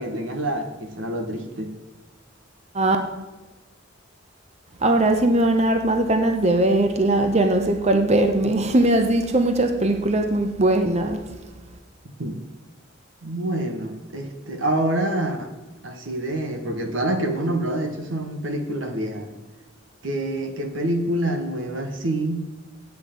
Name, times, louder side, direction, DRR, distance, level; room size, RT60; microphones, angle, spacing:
voice 1, 0.0-1.7 12.2-12.4 13.2-15.5 15.8-19.3 20.0-22.5, right 1 dB, 85° right, 6 dB, 1.3 m, -26 dB
voice 2, 4.8-11.2, right 1 dB, 35° right, 6 dB, 0.9 m, -20 dB
9.1 x 8.2 x 5.2 m, 1.1 s
head